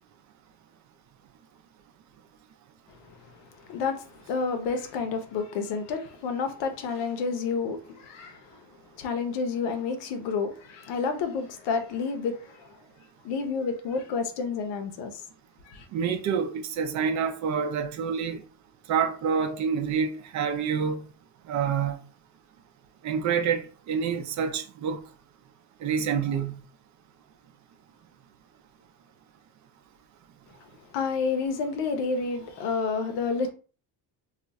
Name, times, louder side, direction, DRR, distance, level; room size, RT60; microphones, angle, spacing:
voice 1, 2.9-8.7 8.9-12.8 13.2-15.2 15.7-15.9 30.9-33.5, left 5 dB, 80° left, 0.8 m, -30 dB
voice 2, 15.9-18.4 18.9-21.0 21.5-21.9 23.0-23.6 23.9-25.0 25.8-26.6, right 6 dB, 45° right, 0.4 m, -27 dB
2.4 x 2.3 x 4.0 m
cardioid pair, 175°, 42 cm